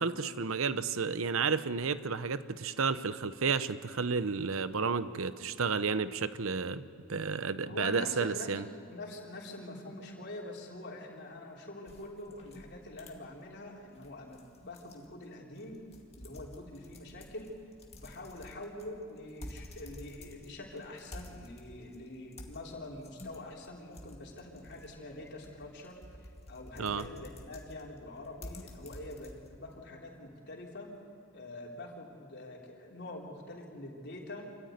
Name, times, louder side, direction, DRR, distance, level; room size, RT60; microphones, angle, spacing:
voice 1, 0.0-8.7 26.8-27.1, right 5 dB, 75° right, 14 dB, 0.8 m, -32 dB
voice 2, 7.6-15.9 16.2-17.5 17.9-30.9 31.3-34.5, left 2 dB, 55° left, -2 dB, 3.8 m, -45 dB
sound 1, 11.9-29.8, left 1 dB, 30° left, 2.0 m, -51 dB
26.5 x 14.5 x 9.4 m, 2.4 s
head